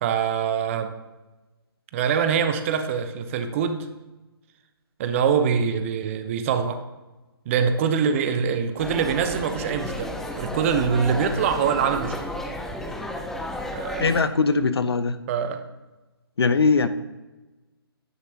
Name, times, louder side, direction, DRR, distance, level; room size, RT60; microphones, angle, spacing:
voice 1, 0.0-0.9 1.9-3.9 5.0-6.8 7.5-12.1 13.7-14.1 15.3-15.6, right 7 dB, 30° right, 8 dB, 0.8 m, -24 dB
sound 1, 8.8-14.2, left 1 dB, 5° left, 0.5 m, -33 dB
voice 2, 14.0-15.2 16.4-16.9, left 4 dB, 70° left, 12 dB, 0.7 m, -20 dB
11.5 x 9.7 x 2.9 m, 1.1 s
figure-of-eight pair, 135°, 13 cm